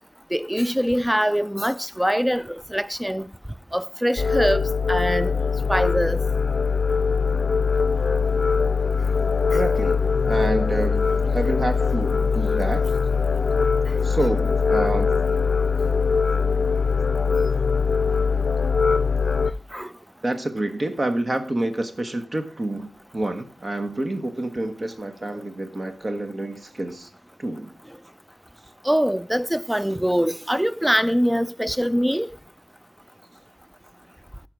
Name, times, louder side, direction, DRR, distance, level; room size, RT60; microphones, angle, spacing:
voice 1, 0.3-3.3 3.7-5.3 5.7-6.2 19.7-19.9 28.8-32.3, equal, 5° right, 0.5 m, -23 dB
sound 1, 4.2-19.5, left 5 dB, 60° left, 0.5 m, -22 dB
voice 2, 9.5-12.8 14.0-15.2 20.2-22.9 23.1-27.1 27.4-27.7, right 1 dB, 40° right, 1.1 m, -28 dB
11.5 x 5.2 x 6.0 m
wide cardioid pair, 70°, 0 cm